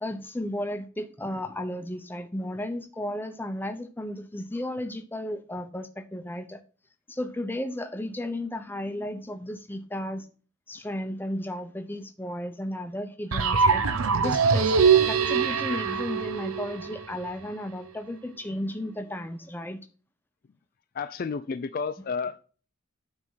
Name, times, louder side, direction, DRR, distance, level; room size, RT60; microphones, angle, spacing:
voice 1, 0.0-6.6 7.1-10.3 10.7-13.9 14.2-14.8 15.1-19.8, left 1 dB, 10° left, 0.7 m, -34 dB
sound 1, 13.3-17.3, right 6 dB, 85° right, 0.7 m, -23 dB
voice 2, 20.9-22.4, left 5 dB, 45° left, 0.3 m, -31 dB
9.3 x 3.6 x 5.5 m
head